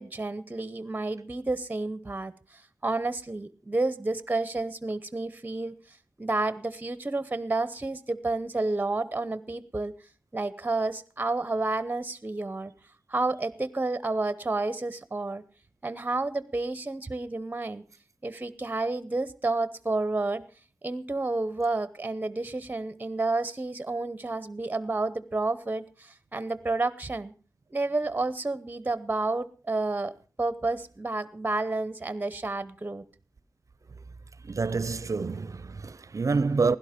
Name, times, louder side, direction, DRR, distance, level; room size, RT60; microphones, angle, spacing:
voice 1, 0.0-2.3 2.8-5.7 6.2-9.9 10.3-12.7 13.1-15.4 15.8-17.8 18.2-20.4 20.8-27.3 27.7-30.1 30.4-33.0, right 2 dB, 25° right, 0.8 m, -30 dB
voice 2, 34.4-36.8, right 4 dB, 50° right, 0.6 m, -27 dB
16.0 x 11.5 x 5.1 m
wide cardioid pair, 85°, 7 cm